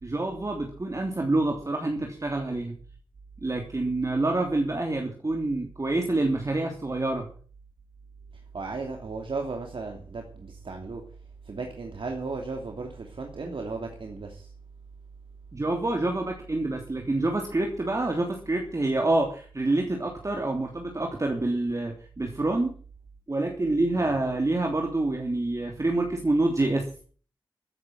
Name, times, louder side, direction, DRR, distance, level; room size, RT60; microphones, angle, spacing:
voice 1, 0.0-2.7 3.4-7.3 15.5-22.8 23.3-27.0, right 2 dB, 35° right, 2 dB, 3.1 m, -27 dB
voice 2, 8.5-11.0 11.4-14.5 23.9-24.2, right 3 dB, 75° right, 3 dB, 2.8 m, -35 dB
14.5 x 9.4 x 7.8 m, 0.43 s
wide cardioid pair, 80°, 9 cm